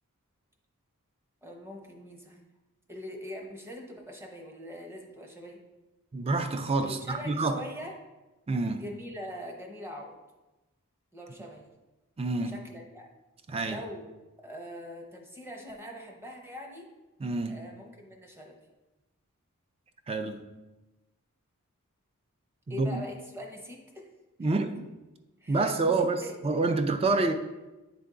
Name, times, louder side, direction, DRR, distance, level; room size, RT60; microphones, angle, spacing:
voice 1, 1.4-2.4 2.9-5.6 6.8-8.0 8.7-10.1 11.1-11.7 12.4-13.1 13.6-14.1 14.4-16.9 17.5-18.6 22.7-24.1 24.4-24.5 25.4-26.3 27.1-27.3, left 1 dB, 10° right, 0.9 m, -43 dB
voice 2, 6.1-7.6 8.5-8.8 12.2-12.5 13.5-13.8 17.2-17.6 20.1-20.4 22.7-23.0 24.4-24.8 25.5-27.3, right 3 dB, 25° right, 0.4 m, -28 dB
9.3 x 3.5 x 3.7 m
head